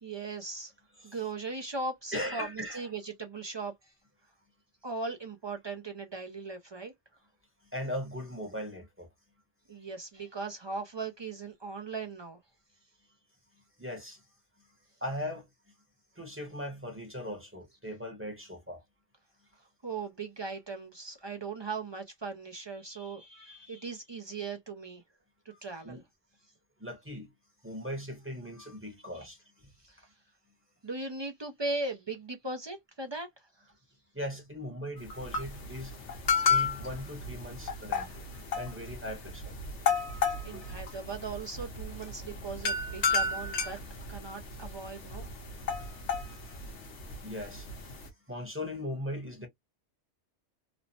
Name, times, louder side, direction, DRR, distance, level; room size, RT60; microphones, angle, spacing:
voice 1, 0.0-0.7 1.0-3.9 4.8-6.9 9.7-12.4 19.8-25.0 25.5-26.0 29.1-29.3 29.8-30.0 30.8-33.7 40.4-43.8 44.1-45.3, right 3 dB, 45° right, 0.3 m, -38 dB
voice 2, 2.1-2.9 7.6-9.1 9.8-9.9 13.8-14.2 15.0-15.5 16.2-18.8 23.3-23.5 25.5-25.6 25.8-26.0 26.8-27.3 27.6-29.7 34.1-36.0 36.4-38.2 38.5-39.5 40.5-40.6 45.7-45.8 46.3-46.4 46.7-46.8 47.2-47.9 48.3-49.5, left 1 dB, 15° right, 0.8 m, -39 dB
sound 1, 35.0-48.1, left 5 dB, 85° left, 1.2 m, -33 dB
3.1 x 2.0 x 2.6 m
omnidirectional pair, 1.2 m